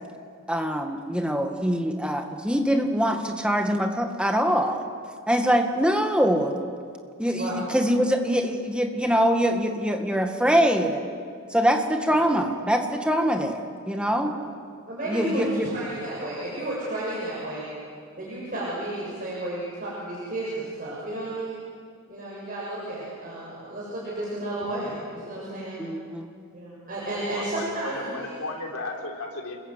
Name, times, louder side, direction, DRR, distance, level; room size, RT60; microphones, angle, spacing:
voice 1, 0.5-4.8 5.3-6.5 7.2-11.0 11.5-14.3 15.1-15.7 25.8-26.3, equal, 5° right, 4 dB, 1.8 m, -23 dB
voice 2, 14.9-17.7 18.2-21.6 22.1-25.8 26.5-28.3, right 1 dB, 40° right, -7 dB, 7.2 m, -32 dB
voice 3, 27.3-29.6, left 2 dB, 90° left, 1 dB, 4.0 m, -35 dB
29.5 x 21.5 x 8.3 m, 2.2 s
head